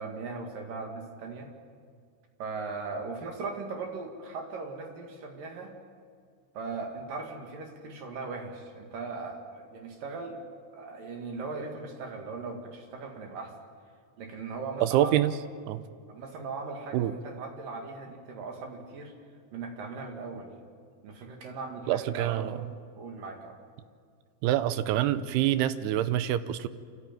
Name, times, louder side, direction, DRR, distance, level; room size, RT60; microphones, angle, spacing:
voice 1, 0.0-1.5 2.4-5.7 6.5-10.4 10.7-13.5 14.2-15.1 16.1-19.1 19.5-20.5 21.0-22.7 23.0-23.6, right 4 dB, 55° right, 2 dB, 3.3 m, -38 dB
voice 2, 14.8-15.3 15.7-15.8 16.9-17.1 21.9-22.6 24.4-26.7, right 13 dB, 80° right, 12 dB, 2.5 m, -26 dB
27.0 x 14.5 x 9.1 m, 2.1 s
omnidirectional pair, 5.1 m